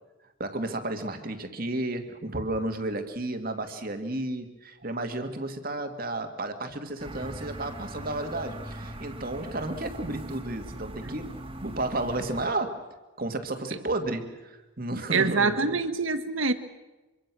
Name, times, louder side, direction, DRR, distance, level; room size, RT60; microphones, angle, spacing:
voice 1, 0.4-11.3 11.6-12.8 13.2-15.8, right 2 dB, 45° right, 6 dB, 2.4 m, -32 dB
sound 1, 7.0-12.5, right 1 dB, 25° right, 2.4 m, -40 dB
voice 2, 15.1-16.5, right 4 dB, 75° right, 10 dB, 1.6 m, -25 dB
25.0 x 25.0 x 6.3 m, 1.1 s
head